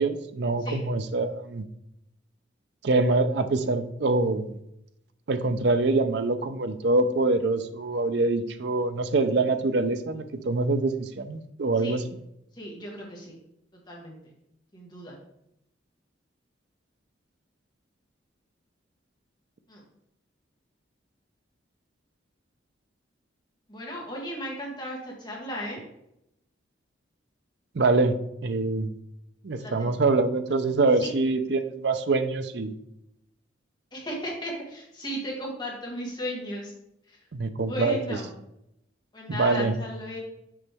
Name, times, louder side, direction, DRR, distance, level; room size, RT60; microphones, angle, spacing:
voice 1, 0.0-1.6 2.8-4.5 5.3-12.0 27.7-28.9 29.4-32.7 37.3-38.0 39.3-39.7, right 3 dB, 60° right, 10 dB, 0.5 m, -25 dB
voice 2, 12.5-13.4 13.7-14.2 14.7-15.1 19.7-19.8 23.7-25.8 29.6-29.9 31.0-31.1 33.9-36.7 37.1-37.2 37.7-38.3 39.1-40.2, equal, 25° left, -2 dB, 1.5 m, -35 dB
6.8 x 5.3 x 3.5 m, 0.81 s
head